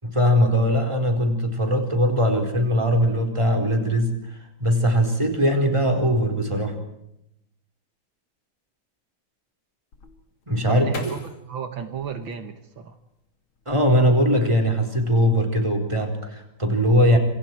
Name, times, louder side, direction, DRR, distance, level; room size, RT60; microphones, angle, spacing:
voice 1, 0.0-6.8 10.5-10.9 13.7-17.2, equal, 15° right, 3 dB, 4.2 m, -20 dB
sound 1, 9.9-13.0 13.5-14.3 14.6-15.1, left 3 dB, 85° left, 3.3 m, -41 dB
voice 2, 10.7-13.0, right 7 dB, 70° right, 7 dB, 2.3 m, -33 dB
27.5 x 27.0 x 4.6 m, 0.81 s
omnidirectional pair, 2.2 m